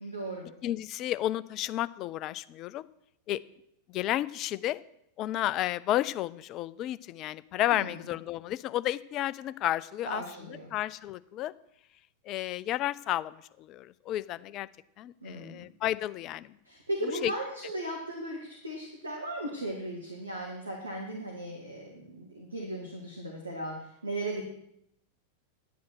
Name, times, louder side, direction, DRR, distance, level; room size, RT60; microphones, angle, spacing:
voice 1, 0.0-0.5 7.7-8.0 10.1-10.7 15.2-15.6 16.7-24.4, right 1 dB, 80° right, 0 dB, 1.7 m, -37 dB
voice 2, 0.6-2.9 3.3-3.4 3.9-4.8 5.2-10.2 10.7-11.5 12.3-14.7 15.0-16.5 17.2-17.3, left 13 dB, 35° left, 18 dB, 0.4 m, -32 dB
10.0 x 8.5 x 6.1 m, 0.76 s
figure-of-eight pair, 90°, 0 cm